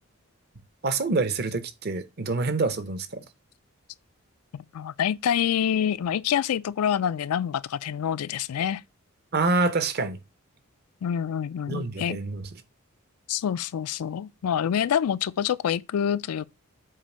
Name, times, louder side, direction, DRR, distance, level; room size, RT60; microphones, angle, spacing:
voice 1, 0.8-3.2 9.3-10.2 11.7-12.5, right 3 dB, 45° right, 0.7 m, -26 dB
voice 2, 4.5-8.8 11.0-12.2 13.3-16.5, left 9 dB, 90° left, 0.4 m, -26 dB
7.4 x 2.5 x 5.4 m
head